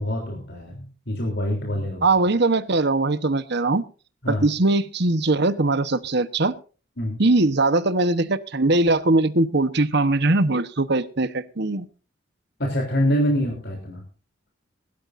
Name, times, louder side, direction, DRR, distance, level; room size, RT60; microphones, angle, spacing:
voice 1, 0.0-2.0 4.2-4.5 7.0-7.2 12.6-14.0, equal, 60° left, 1 dB, 3.6 m, -25 dB
voice 2, 2.0-3.8 4.3-6.5 7.2-11.9, right 2 dB, 60° right, 13 dB, 1.2 m, -21 dB
21.0 x 12.5 x 2.7 m, 0.36 s
head